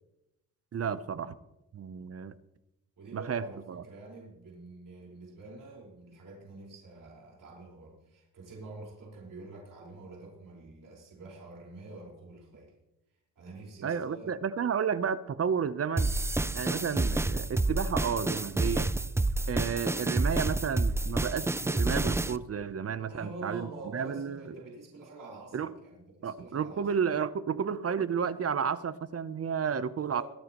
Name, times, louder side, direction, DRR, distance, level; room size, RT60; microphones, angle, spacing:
voice 1, 0.7-1.4 1.7-2.3 3.1-3.8 13.8-16.1 16.5-18.9 19.5-24.4 25.5-25.7 26.2-30.2, right 7 dB, 40° right, 15 dB, 0.7 m, -32 dB
voice 2, 3.0-12.7 13.4-14.3 23.0-26.9 30.1-30.2, right 2 dB, 60° right, -3 dB, 4.8 m, -46 dB
sound 1, 16.0-22.4, right 2 dB, 10° right, 0.3 m, -29 dB
24.0 x 9.2 x 3.0 m, 0.92 s
cardioid pair, 90°, 37 cm